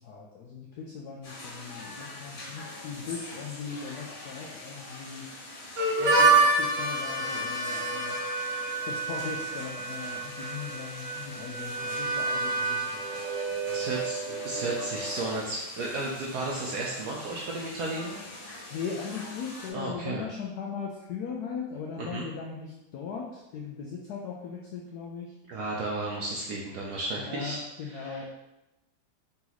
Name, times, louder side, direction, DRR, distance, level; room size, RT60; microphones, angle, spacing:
voice 1, 0.0-5.3 6.0-8.1 8.9-13.0 13.3-13.9 14.3-14.4 18.7-25.3 27.2-28.2, left 6 dB, 85° left, -2 dB, 0.8 m, -39 dB
sound 1, 1.2-19.7, left 2 dB, 60° left, 1.8 m, -44 dB
Harmonica, 5.8-15.4, right 3 dB, 50° right, 1.1 m, -28 dB
voice 2, 13.7-18.1 19.7-20.3 22.0-22.2 25.5-27.6 27.9-28.2, right 2 dB, 75° right, -3 dB, 0.9 m, -33 dB
3.9 x 2.9 x 3.9 m, 0.95 s
omnidirectional pair, 2.2 m